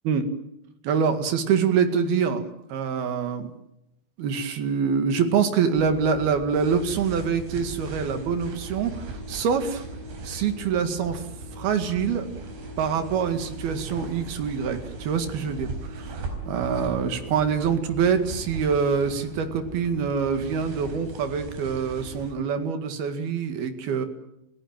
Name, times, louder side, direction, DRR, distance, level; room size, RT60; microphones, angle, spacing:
voice 1, 0.8-3.5 4.2-9.8 10.3-11.3 11.5-12.3 12.8-24.1, right 6 dB, 60° right, 7 dB, 3.7 m, -25 dB
sound 1, 5.7-22.3, right 2 dB, 90° right, 7.3 m, -38 dB
29.5 x 17.0 x 9.0 m, 0.84 s
omnidirectional pair, 5.2 m